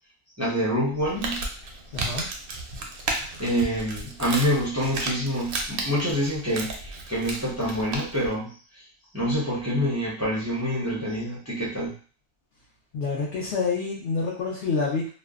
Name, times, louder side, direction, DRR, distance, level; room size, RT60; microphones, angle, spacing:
voice 1, 0.4-1.4 3.4-8.5 9.1-11.9, equal, 20° right, -6 dB, 0.4 m, -26 dB
Crumpling crinkling, 0.9-8.3, right 2 dB, 60° right, 0.6 m, -34 dB
voice 2, 1.9-2.3 12.9-15.1, left 4 dB, 70° left, -3 dB, 0.9 m, -27 dB
2.5 x 2.1 x 2.3 m, 0.41 s
omnidirectional pair, 1.2 m